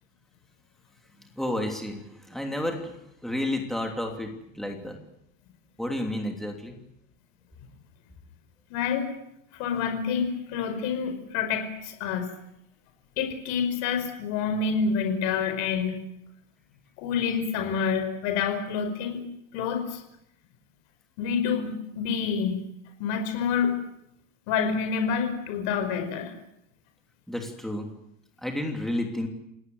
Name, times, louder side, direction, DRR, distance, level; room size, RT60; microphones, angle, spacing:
voice 1, 1.4-3.0 3.2-5.0 5.8-6.8 27.3-27.9 28.4-29.3, left 1 dB, ahead, 2 dB, 3.0 m, -31 dB
voice 2, 8.7-9.1 9.6-12.3 13.2-15.9 17.0-19.2 19.5-20.0 21.2-22.7 23.0-23.8 24.5-26.3, left 6 dB, 50° left, 6 dB, 5.4 m, -27 dB
28.5 x 18.5 x 8.0 m, 0.80 s
supercardioid pair, 170°, 39 cm